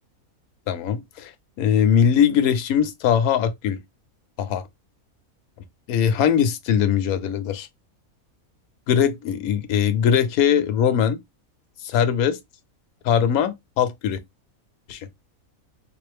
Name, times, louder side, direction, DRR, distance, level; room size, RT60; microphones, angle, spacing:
voice 1, 0.7-1.3 1.6-3.8 4.4-4.6 5.9-7.7 8.9-11.2 11.8-12.4 13.0-14.2 14.9-15.1, left 8 dB, 85° left, 1.1 m, -21 dB
3.6 x 2.5 x 3.3 m
omnidirectional pair, 1.5 m